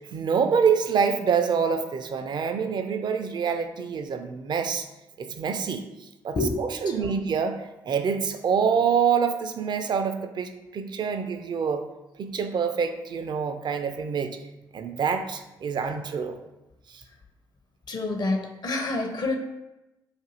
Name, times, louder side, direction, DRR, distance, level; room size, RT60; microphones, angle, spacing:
voice 1, 0.1-4.9 5.2-11.9 12.2-14.4 14.7-16.4 16.9-17.0, right 6 dB, 50° right, 7 dB, 0.4 m, -26 dB
voice 2, 6.9-7.2 17.9-19.4, left 2 dB, 45° left, 4 dB, 0.5 m, -28 dB
2.5 x 2.4 x 4.1 m, 0.99 s
hypercardioid pair, 40°, 10 cm